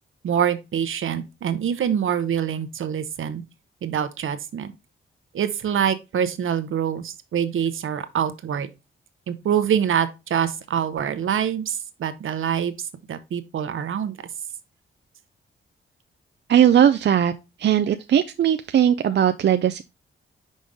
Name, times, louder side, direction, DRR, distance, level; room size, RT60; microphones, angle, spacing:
voice 1, 0.2-3.4 3.8-4.7 5.3-8.7 9.3-12.7 13.1-14.2, right 8 dB, 70° right, 0.8 m, -25 dB
voice 2, 16.5-17.3 17.6-19.8, right 9 dB, 55° right, 0.4 m, -18 dB
5.3 x 5.1 x 3.5 m
cardioid pair, 75°, 21 cm